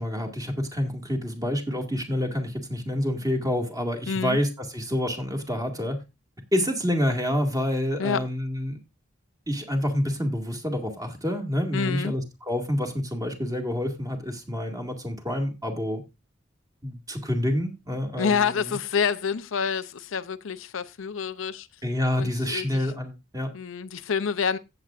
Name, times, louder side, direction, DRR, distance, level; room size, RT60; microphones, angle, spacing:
voice 1, 0.0-6.0 6.5-8.8 9.5-16.0 16.8-18.8 21.8-23.5, left 1 dB, 20° right, 2.1 m, -28 dB
voice 2, 4.1-4.4 8.0-8.2 11.7-12.1 18.2-21.7 22.1-22.9 23.5-24.6, left 6 dB, 80° left, 0.6 m, -27 dB
16.0 x 7.8 x 2.5 m
head